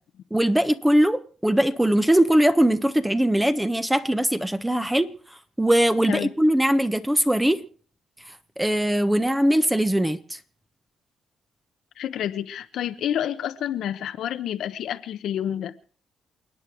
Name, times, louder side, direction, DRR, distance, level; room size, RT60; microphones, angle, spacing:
voice 1, 0.3-5.1 5.6-7.6 8.6-10.4, right 1 dB, 5° right, 1.3 m, -21 dB
voice 2, 12.0-15.7, left 10 dB, 75° left, 1.1 m, -29 dB
29.0 x 9.7 x 4.7 m
cardioid pair, 90°, 0 cm